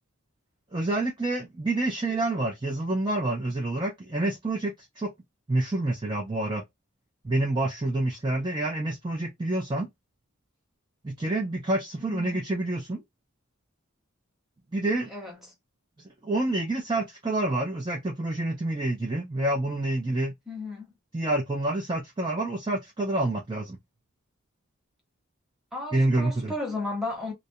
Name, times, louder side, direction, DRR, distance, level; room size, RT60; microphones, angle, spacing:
voice 1, 0.7-5.1 5.5-6.6 7.2-9.9 11.0-13.0 14.7-15.1 16.2-20.3 21.1-23.8 25.9-26.5, right 2 dB, 20° right, 0.4 m, -28 dB
voice 2, 12.0-12.4 15.1-15.4 20.5-20.9 25.7-27.3, left 2 dB, ahead, 0.9 m, -34 dB
2.4 x 2.1 x 2.6 m
head